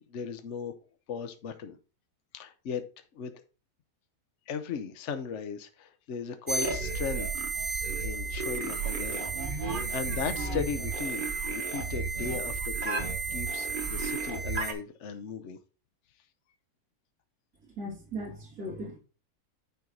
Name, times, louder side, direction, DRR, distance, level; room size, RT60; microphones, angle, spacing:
voice 1, 0.1-0.7 1.1-1.8 2.3-2.8 3.1-3.4 4.5-7.5 8.0-15.6, left 6 dB, 55° left, 8 dB, 1.0 m, -37 dB
Alien transmission, 6.5-14.7, right 4 dB, 35° right, 1.3 m, -32 dB
voice 2, 17.8-19.0, right 1 dB, 75° right, -3 dB, 3.3 m, -38 dB
9.5 x 4.5 x 3.8 m, 0.34 s
omnidirectional pair, 1.6 m